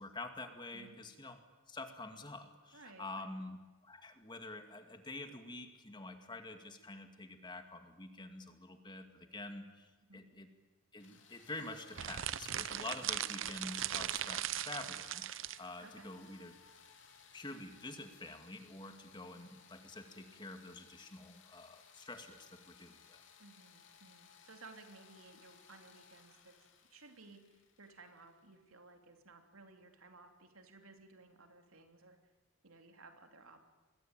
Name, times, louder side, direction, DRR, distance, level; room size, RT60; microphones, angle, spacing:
voice 1, 0.0-1.4 1.7-3.6 3.8-10.5 10.9-16.5 17.3-23.2, left 2 dB, 20° left, 7 dB, 2.2 m, -47 dB
voice 2, 2.7-3.4 10.1-10.2 15.8-16.1 23.4-26.5 26.9-32.2 32.6-33.6, right 3 dB, 85° right, 5 dB, 3.2 m, -58 dB
sound 1, 11.0-28.7, left 6 dB, 60° left, 3.7 m, -62 dB
sound 2, 11.9-15.6, right 11 dB, 65° right, 0.7 m, -39 dB
27.0 x 21.5 x 9.0 m, 1.2 s
head